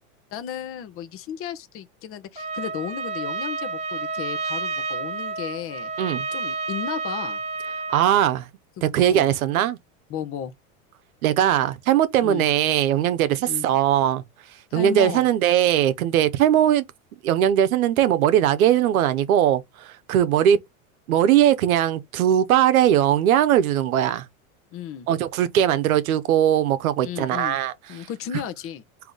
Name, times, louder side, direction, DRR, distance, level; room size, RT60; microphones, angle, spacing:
voice 1, 0.3-5.9 6.3-7.4 9.0-9.3 10.1-10.5 12.2-12.5 13.5-13.7 14.7-15.3 24.7-25.1 27.0-27.6 27.9-28.8, left 9 dB, 35° left, 0.7 m, -34 dB
Trumpet, 2.3-8.2, right 4 dB, 15° right, 1.1 m, -30 dB
voice 2, 7.9-8.5 8.8-9.8 11.2-14.2 14.7-16.8 17.2-20.6 21.1-24.2 25.1-27.7, right 11 dB, 85° right, 0.8 m, -20 dB
3.7 x 2.8 x 3.8 m
supercardioid pair, 115°, 41 cm